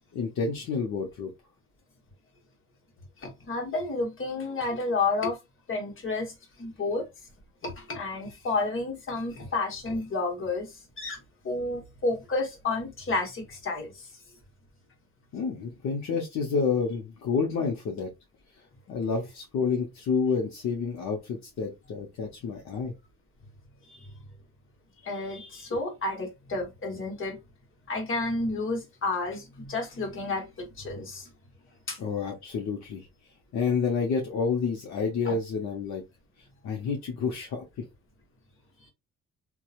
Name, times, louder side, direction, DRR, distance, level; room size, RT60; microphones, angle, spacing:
voice 1, 0.1-1.3 15.3-18.1 18.9-22.9 32.0-33.1 33.5-36.0 36.6-37.8, left 5 dB, 65° left, 0.8 m, -29 dB
voice 2, 3.2-5.4 5.7-7.1 7.6-11.2 11.4-14.1 23.9-24.1 25.0-27.4 27.9-31.3 31.9-32.0 35.2-35.4, left 3 dB, 45° left, 1.2 m, -31 dB
2.8 x 2.3 x 2.4 m
cardioid pair, 90°, 30 cm